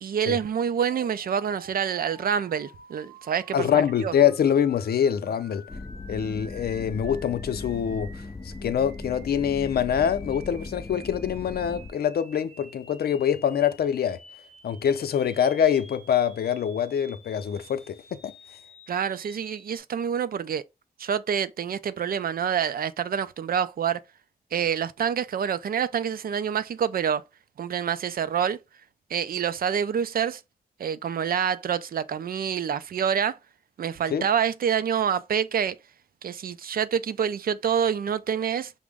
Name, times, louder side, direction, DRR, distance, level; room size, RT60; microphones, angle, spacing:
voice 1, 0.0-4.1 18.9-20.6 21.0-24.0 24.5-27.2 27.6-28.6 29.1-30.4 30.8-33.4 33.8-35.8 36.2-38.7, right 8 dB, 70° right, 0.4 m, -27 dB
sound 1, 0.8-19.8, right 1 dB, 35° right, 2.1 m, -51 dB
voice 2, 3.5-5.6 6.1-14.2 14.6-18.3 34.1-34.3, left 8 dB, 85° left, 0.5 m, -25 dB
sound 2, 5.7-11.9, left 2 dB, 20° left, 0.4 m, -38 dB
5.9 x 2.1 x 3.4 m
wide cardioid pair, 110°, 16 cm